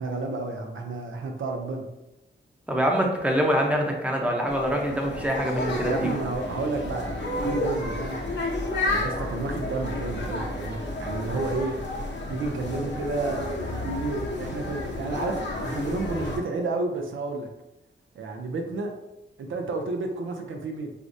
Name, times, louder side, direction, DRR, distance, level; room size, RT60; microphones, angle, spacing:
voice 1, 0.0-1.9 5.9-8.2 8.8-11.8 12.3-17.5 18.2-18.9 19.4-20.9, right 3 dB, 85° right, 3 dB, 0.5 m, -31 dB
voice 2, 2.7-5.9, equal, 5° right, 0 dB, 0.7 m, -24 dB
sound 1, 4.5-16.4, left 2 dB, 60° left, 0.8 m, -31 dB
4.8 x 2.0 x 2.6 m, 0.95 s
cardioid pair, 75°, 20 cm